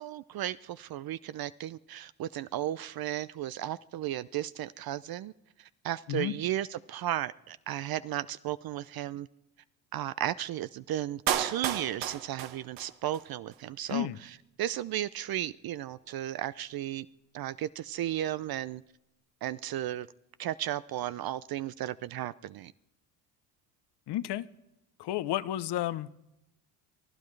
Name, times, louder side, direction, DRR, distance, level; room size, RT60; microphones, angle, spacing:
voice 1, 0.0-5.3 5.6-9.3 9.9-17.1 17.3-18.8 19.4-20.1 20.4-22.7, right 13 dB, 50° right, 0.5 m, -34 dB
Clapping, 11.3-13.3 13.5-13.6, right 11 dB, 85° right, 1.3 m, -32 dB
voice 2, 24.1-24.5 25.0-26.1, left 13 dB, 60° left, 0.8 m, -31 dB
24.0 x 13.5 x 3.3 m
supercardioid pair, 80°, 47 cm